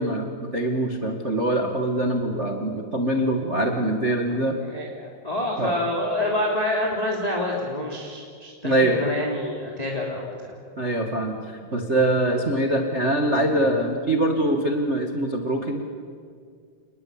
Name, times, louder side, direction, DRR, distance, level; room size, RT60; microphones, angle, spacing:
voice 1, 0.0-4.6 5.6-5.7 8.6-9.0 10.8-15.9, right 1 dB, 40° right, 3 dB, 0.9 m, -23 dB
voice 2, 4.6-10.3, left 1 dB, 10° left, -2 dB, 2.7 m, -27 dB
29.0 x 20.5 x 8.8 m, 2.1 s
omnidirectional pair, 4.5 m